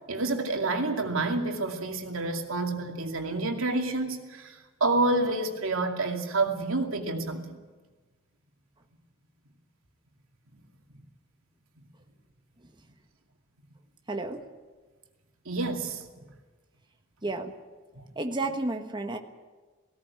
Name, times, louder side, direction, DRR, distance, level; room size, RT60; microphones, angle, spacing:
voice 1, 0.1-7.6 15.5-16.0 18.0-18.1, right 2 dB, 80° right, 3 dB, 2.5 m, -28 dB
voice 2, 14.1-14.4 17.2-17.5 18.1-19.2, right 2 dB, 20° right, 5 dB, 1.3 m, -31 dB
17.5 x 17.0 x 9.6 m, 1.3 s
head